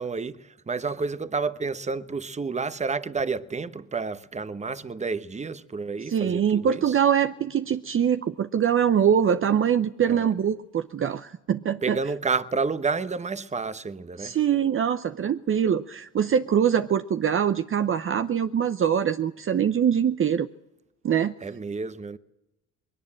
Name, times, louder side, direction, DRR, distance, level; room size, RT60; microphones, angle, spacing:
voice 1, 0.0-7.0 10.1-10.3 11.8-14.4 21.4-22.2, right 4 dB, 25° right, 1.1 m, -30 dB
voice 2, 6.1-12.0 14.2-20.5 21.0-21.3, right 8 dB, 45° right, 0.8 m, -23 dB
21.0 x 18.0 x 7.6 m
cardioid pair, 90°, 30 cm